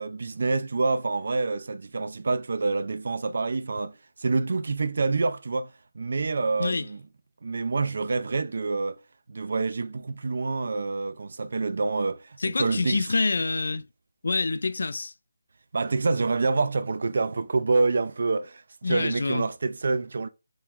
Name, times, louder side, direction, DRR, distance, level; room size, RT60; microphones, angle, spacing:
voice 1, 0.0-7.0 7.4-9.0 9.3-13.1 15.7-20.3, right 3 dB, 60° right, 0.3 m, -27 dB
voice 2, 12.4-13.9 14.2-15.1 18.8-19.5, left 3 dB, 70° left, 0.3 m, -26 dB
3.0 x 2.3 x 3.5 m
figure-of-eight pair, 165°, 0 cm